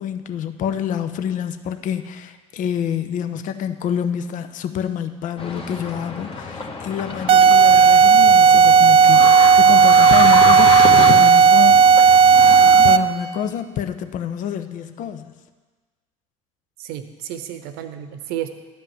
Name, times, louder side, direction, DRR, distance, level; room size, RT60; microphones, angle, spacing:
voice 1, 0.0-11.8 12.8-15.3, left 8 dB, 45° left, 9 dB, 0.8 m, -27 dB
sound 1, 5.4-13.0, left 3 dB, 30° left, 1.6 m, -27 dB
sound 2, 7.3-13.2, right 6 dB, 35° right, 0.4 m, -12 dB
voice 2, 16.8-18.5, right 11 dB, 60° right, 10 dB, 0.9 m, -31 dB
12.0 x 5.4 x 7.5 m, 1.4 s
hypercardioid pair, 65°, 18 cm